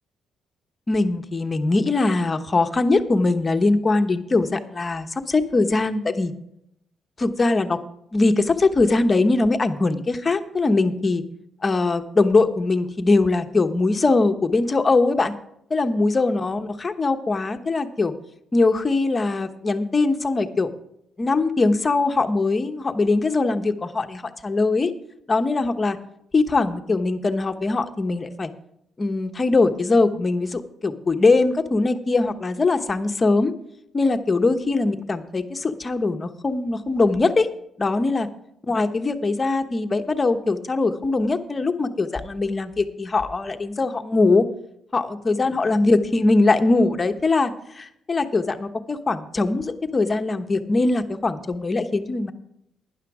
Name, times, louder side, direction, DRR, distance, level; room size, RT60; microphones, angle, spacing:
voice 1, 0.9-6.3 7.2-7.8 8.1-11.2 11.6-15.3 15.7-18.1 18.5-20.7 21.2-24.9 25.3-26.0 26.3-28.5 29.0-33.5 33.9-37.5 37.8-38.3 38.7-44.4 44.9-52.3, left 3 dB, 30° left, 8 dB, 1.0 m, -21 dB
11.5 x 10.5 x 4.9 m, 0.76 s
cardioid pair, 90°, 0 cm